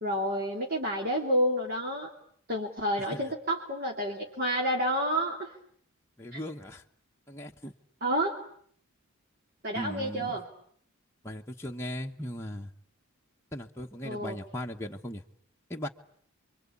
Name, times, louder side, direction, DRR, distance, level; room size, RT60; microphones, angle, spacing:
voice 1, 0.0-2.1 2.5-5.5 6.3-6.4 8.0-8.4 9.6-10.4 14.0-14.4, equal, 45° right, -1 dB, 3.0 m, -29 dB
voice 2, 6.2-6.8 7.3-7.7 9.7-10.4 11.2-12.7 13.5-15.2 15.7-15.9, equal, 10° left, 0 dB, 1.2 m, -38 dB
29.0 x 24.0 x 8.6 m, 0.64 s
head